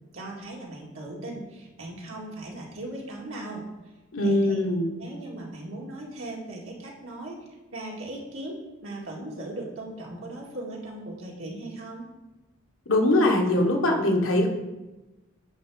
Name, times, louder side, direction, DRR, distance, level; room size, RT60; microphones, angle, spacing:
voice 1, 0.1-3.6 4.2-4.6 5.0-7.4 7.7-12.1, right 1 dB, 90° right, -2 dB, 2.1 m, -38 dB
voice 2, 4.1-4.9 12.9-14.5, left 1 dB, 80° left, 2 dB, 1.4 m, -22 dB
10.5 x 3.7 x 6.3 m, 1.1 s
head